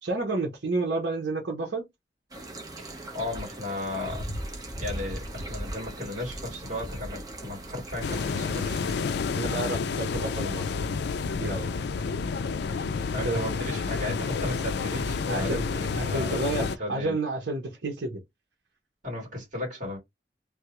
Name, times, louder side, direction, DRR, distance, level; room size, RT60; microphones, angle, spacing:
voice 1, 0.0-1.8 9.3-10.9 11.4-11.8 13.2-13.4 15.3-15.6 15.9-18.2, right 2 dB, 75° right, 0.9 m, -30 dB
sound 1, 2.3-8.9, right 1 dB, 20° right, 1.0 m, -38 dB
voice 2, 2.8-4.3 4.8-8.7 13.1-17.1 19.0-20.0, left 1 dB, 45° right, 2.3 m, -35 dB
sound 2, 8.0-16.8, left 5 dB, 65° left, 0.4 m, -30 dB
3.5 x 2.2 x 3.0 m
head